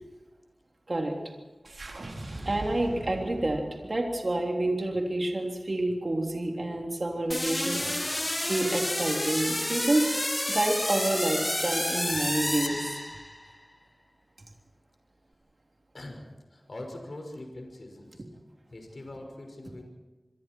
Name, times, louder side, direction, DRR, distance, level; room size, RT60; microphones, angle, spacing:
sound 1, 1.6-6.0, right 2 dB, 65° right, 4.1 m, -42 dB
voice 1, 2.4-7.8 8.4-10.1 10.4-13.0, right 1 dB, 45° right, 1 dB, 3.4 m, -28 dB
sound 2, 7.3-13.5, left 1 dB, 20° left, 1.1 m, -30 dB
voice 2, 7.7-8.2 15.9-16.2 16.5-18.2 18.7-19.9, left 1 dB, 55° left, 3 dB, 5.8 m, -43 dB
27.5 x 23.0 x 4.7 m, 1.2 s
wide cardioid pair, 75°, 0 cm